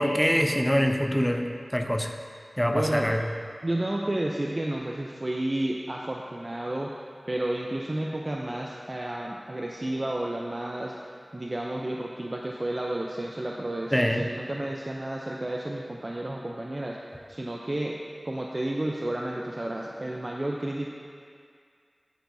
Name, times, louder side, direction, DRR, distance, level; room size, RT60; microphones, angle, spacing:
voice 1, 0.0-2.1 2.6-3.2 13.9-14.2, equal, 5° left, 4 dB, 0.6 m, -24 dB
voice 2, 2.7-3.2 3.6-6.9 7.3-11.0 11.3-17.0 17.3-18.0 18.2-20.9, right 1 dB, 40° right, -1 dB, 0.6 m, -31 dB
11.0 x 9.3 x 2.7 m, 2.2 s
wide cardioid pair, 60°, 0 cm